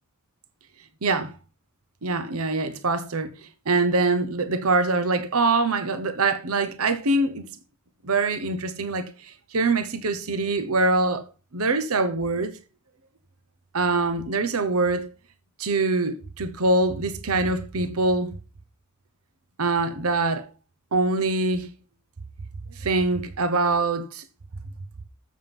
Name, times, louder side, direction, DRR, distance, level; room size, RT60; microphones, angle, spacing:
voice 1, 1.0-1.3 2.0-3.3 3.7-7.4 8.0-11.3 11.5-12.5 13.7-15.1 15.6-18.3 19.6-20.5 20.9-21.7 22.8-24.2, right 3 dB, 70° right, 1.0 m, -24 dB
7.7 x 7.3 x 7.0 m
head